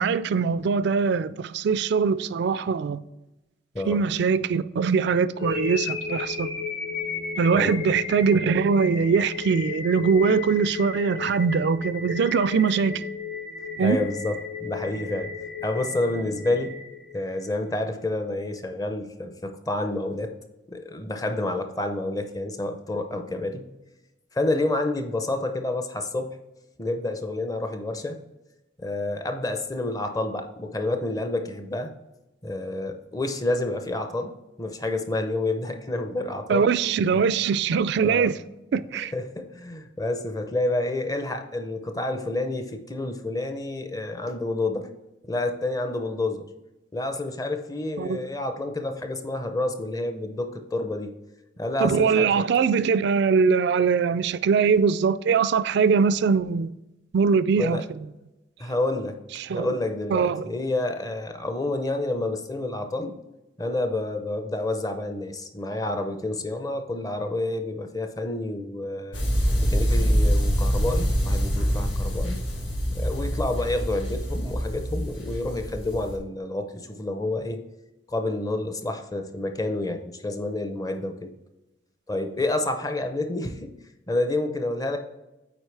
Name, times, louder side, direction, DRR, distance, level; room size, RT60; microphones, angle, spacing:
voice 1, 0.0-3.0 3.9-6.5 7.4-13.0 13.8-14.0 36.5-38.4 38.7-39.1 48.0-48.2 51.8-56.7 57.1-57.8 59.4-59.8 60.1-60.4, right 5 dB, 60° right, 0.3 m, -22 dB
sound 1, 5.4-17.4, left 5 dB, 55° left, 2.3 m, -34 dB
voice 2, 13.8-15.4 15.6-16.8 17.1-20.3 20.7-23.6 24.3-26.4 26.8-28.2 28.8-31.9 32.4-36.7 37.1-37.2 38.0-38.3 38.9-44.9 45.2-46.5 46.9-51.1 51.6-52.5 57.6-57.8 58.6-59.2 59.5-63.2 63.6-69.2 69.6-72.4 72.9-77.6 78.1-81.3 82.1-83.8 84.1-85.0, left 2 dB, 20° left, 0.6 m, -29 dB
sound 2, 69.1-76.2, equal, 75° left, 1.8 m, -25 dB
8.0 x 4.7 x 3.3 m
head